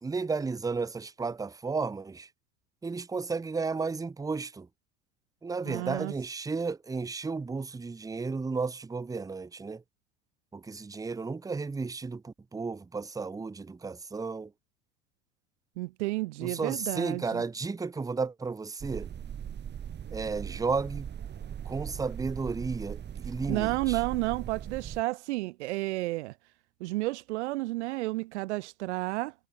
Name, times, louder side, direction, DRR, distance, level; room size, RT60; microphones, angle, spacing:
voice 1, 0.0-2.3 2.8-4.7 5.4-9.8 10.5-14.5 16.4-19.1 20.1-21.1 21.6-24.0, right 4 dB, 10° right, 0.8 m, -33 dB
voice 2, 5.7-6.1 15.8-17.4 23.5-26.3 26.8-29.3, right 20 dB, 65° right, 0.6 m, -31 dB
sound 1, 18.8-25.0, right 9 dB, 30° right, 1.5 m, -39 dB
hypercardioid pair, 80°, 37 cm